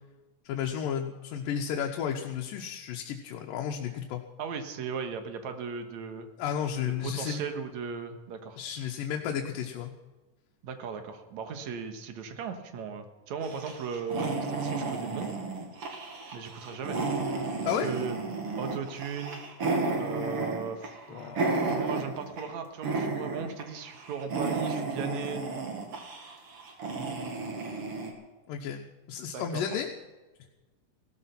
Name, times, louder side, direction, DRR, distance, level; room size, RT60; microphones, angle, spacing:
voice 1, 0.5-4.2 6.4-7.4 8.6-9.9 17.6-17.9 21.1-21.6 28.5-29.9, left 8 dB, 85° left, 2 dB, 2.7 m, -33 dB
voice 2, 4.4-6.3 6.9-8.6 10.6-15.3 16.3-17.0 17.6-18.2 18.6-19.4 20.0-21.4 21.7-25.4 29.3-29.6, right 6 dB, 65° right, 7 dB, 2.6 m, -37 dB
sound 1, 13.4-22.5 22.8-23.6 23.9-28.1, right 3 dB, 45° right, 2.7 m, -33 dB
17.0 x 13.5 x 5.8 m, 1.2 s
omnidirectional pair, 3.8 m